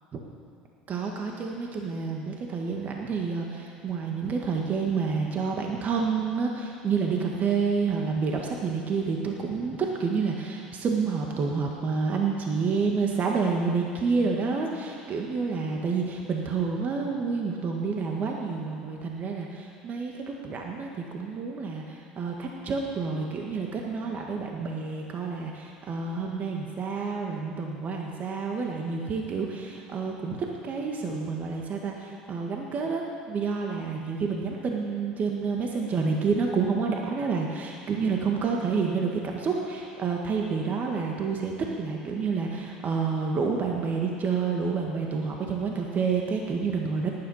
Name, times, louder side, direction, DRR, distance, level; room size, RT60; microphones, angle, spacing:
voice 1, 0.9-47.1, right 5 dB, 40° right, 1 dB, 1.7 m, -29 dB
18.0 x 10.5 x 5.7 m, 2.3 s
hypercardioid pair, 80°, 4 cm